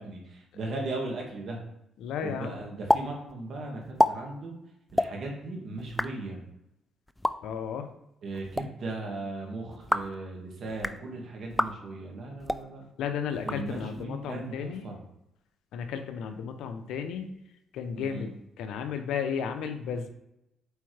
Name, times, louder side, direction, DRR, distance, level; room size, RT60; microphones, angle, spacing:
voice 1, 0.0-1.6 2.2-4.6 4.9-6.4 8.2-12.8 13.4-15.0 17.9-18.3, right 2 dB, 60° right, 0 dB, 1.9 m, -37 dB
voice 2, 2.0-2.6 7.4-7.9 13.0-14.9 15.7-17.4 17.7-20.1, left 7 dB, 85° left, 7 dB, 0.8 m, -34 dB
sound 1, 2.9-3.0 3.3-3.4 3.8-4.1 4.9-5.1 5.8-6.1 7.1-7.3 8.3-8.7 9.7-10.1 10.7-11.0 11.5-11.7 12.4-12.6 13.3-14.0, left 1 dB, 10° left, 0.4 m, -27 dB
8.2 x 4.4 x 3.4 m, 0.83 s
cardioid pair, 90°, 0 cm